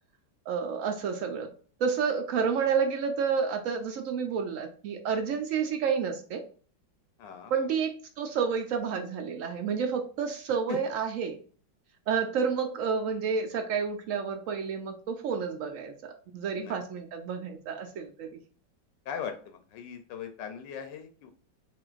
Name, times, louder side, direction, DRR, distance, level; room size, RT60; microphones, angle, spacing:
voice 1, 0.5-1.5 1.8-6.4 7.5-11.4 12.1-18.4, right 6 dB, 75° right, 5 dB, 0.7 m, -30 dB
voice 2, 7.2-7.5 10.7-10.8 16.5-16.7 19.1-21.3, left 7 dB, 80° left, 7 dB, 1.2 m, -39 dB
5.4 x 2.5 x 2.4 m, 0.41 s
omnidirectional pair, 1.9 m